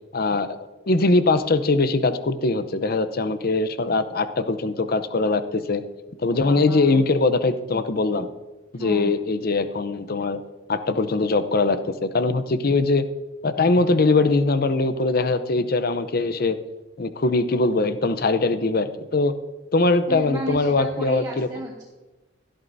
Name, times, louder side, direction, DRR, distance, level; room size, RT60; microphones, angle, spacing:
voice 1, 0.1-5.8 6.2-8.3 8.7-10.4 10.7-13.0 13.4-16.6 17.0-19.3 19.7-21.5, left 3 dB, 50° left, 11 dB, 0.7 m, -21 dB
voice 2, 6.3-7.1 8.7-9.2 20.1-21.8, equal, 20° right, -3 dB, 1.5 m, -34 dB
17.0 x 12.5 x 2.7 m, 1.1 s
head